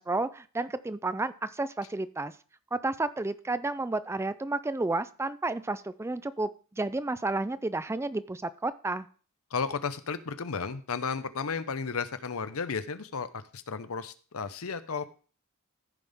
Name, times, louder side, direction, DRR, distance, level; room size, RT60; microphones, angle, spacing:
voice 1, 0.0-2.3 2.7-9.1, right 2 dB, 10° right, 14 dB, 0.4 m, -31 dB
voice 2, 9.5-15.1, left 5 dB, 80° left, 12 dB, 0.8 m, -33 dB
14.5 x 5.5 x 3.5 m, 0.39 s
head